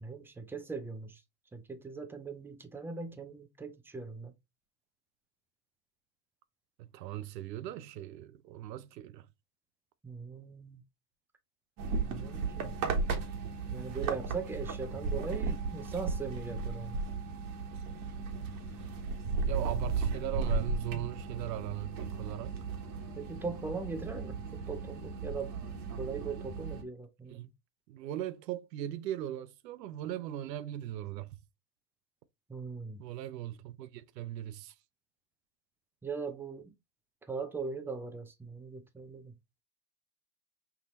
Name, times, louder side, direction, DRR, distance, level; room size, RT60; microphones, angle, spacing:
voice 1, 0.0-1.2 1.5-4.3 10.0-10.8 12.0-12.7 13.7-17.0 23.2-25.6 26.0-27.5 32.5-33.0 36.0-36.7 37.3-39.3, right 4 dB, 5° right, 0.3 m, -40 dB
voice 2, 6.8-9.3 19.5-22.5 27.3-27.5 27.9-31.4 33.0-34.7, right 13 dB, 85° right, 0.8 m, -39 dB
sound 1, 11.8-26.8, right 4 dB, 45° right, 1.3 m, -35 dB
5.9 x 2.7 x 3.0 m
supercardioid pair, 115°, 48 cm